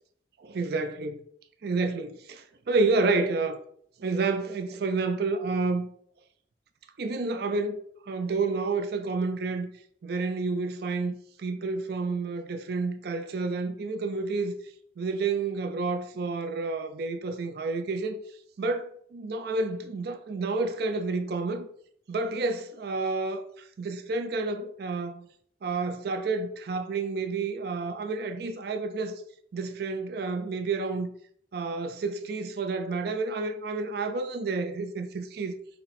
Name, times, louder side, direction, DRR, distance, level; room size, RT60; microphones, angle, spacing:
voice 1, 0.4-1.2 1.6-3.6 4.0-5.9 7.0-9.7 10.0-14.6 15.0-18.2 18.6-21.7 22.1-23.4 23.8-25.3 25.6-29.2 29.5-31.1 31.5-35.6, right 3 dB, 55° right, 0.4 m, -30 dB
4.2 x 2.1 x 4.0 m
head